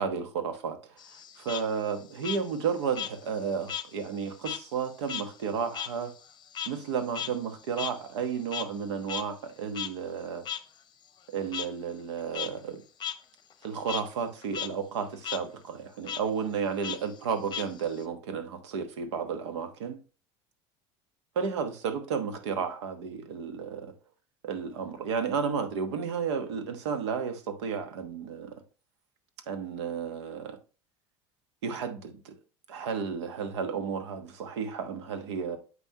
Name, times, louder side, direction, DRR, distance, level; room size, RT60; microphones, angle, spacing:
voice 1, 0.0-6.1 6.6-10.5 11.3-12.8 13.6-20.0 21.3-23.9 24.4-28.6 29.5-30.6 31.6-32.3 32.7-35.6, right 6 dB, 85° right, 1.1 m, -32 dB
Frog, 1.0-3.9 4.2-8.8 9.1-9.2 9.7-9.9 10.5-10.6 11.5-11.7 12.2-12.5 13.0-13.1 13.5-14.0 14.4-14.7 15.0-15.4 16.0-16.2 16.8-18.0, left 9 dB, 30° left, 0.8 m, -36 dB
7.9 x 5.6 x 2.8 m
hypercardioid pair, 90°, 14 cm